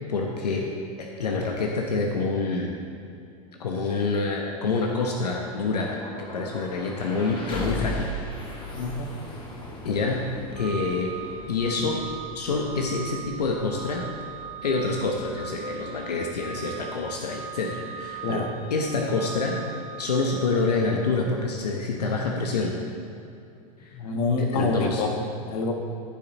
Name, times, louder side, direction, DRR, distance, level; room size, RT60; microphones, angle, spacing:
voice 1, 0.1-0.7 1.0-2.8 3.6-8.1 9.8-10.3 10.5-11.1 11.5-12.0 12.3-14.1 14.6-18.4 18.7-19.6 20.0-22.7 23.8-23.9 24.5-25.0, left 3 dB, 85° left, 0 dB, 1.0 m, -27 dB
sound 1, 4.8-16.6, equal, 25° left, 2.0 m, -39 dB
voice 2, 8.8-9.3 18.2-18.5 23.9-25.7, left 3 dB, 55° left, 3 dB, 1.4 m, -27 dB
Organ, 10.5-21.3, right 7 dB, 35° right, 1.2 m, -40 dB
15.0 x 5.8 x 4.1 m, 2.6 s
hypercardioid pair, 100°, 20 cm